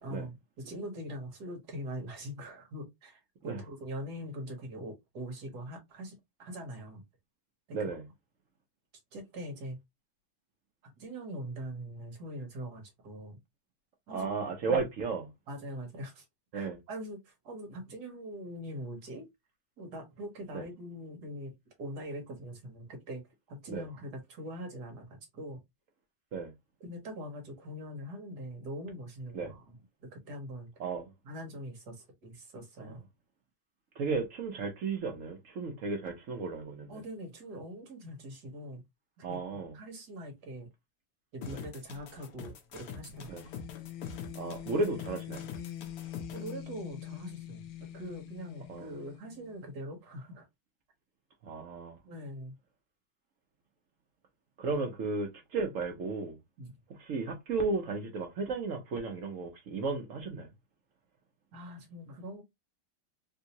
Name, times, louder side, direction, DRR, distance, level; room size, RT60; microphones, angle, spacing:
voice 1, 0.0-7.0 7.7-7.9 9.1-9.8 10.8-13.4 14.1-14.3 14.6-14.8 15.5-16.2 16.5-19.3 19.8-21.5 21.8-23.2 23.5-25.6 26.8-30.7 31.2-33.0 36.9-38.8 39.2-40.7 41.3-43.3 46.3-50.5 52.0-52.5 56.6-56.8 61.5-62.4, equal, 55° right, 1.5 m, -42 dB
voice 2, 7.7-8.1 14.1-15.3 16.5-16.8 20.5-20.6 23.7-23.8 26.3-26.5 29.3-29.5 30.8-31.1 32.8-32.9 34.0-37.0 39.2-39.8 41.5-41.6 43.3-43.4 44.3-45.5 48.7-48.9 51.4-52.0 54.6-56.4 57.0-60.5, right 4 dB, 75° right, 0.7 m, -34 dB
sound 1, 41.4-46.5, left 5 dB, 65° left, 1.0 m, -45 dB
sound 2, 43.1-49.7, left 12 dB, 80° left, 1.5 m, -44 dB
3.6 x 2.7 x 2.8 m
omnidirectional pair, 2.3 m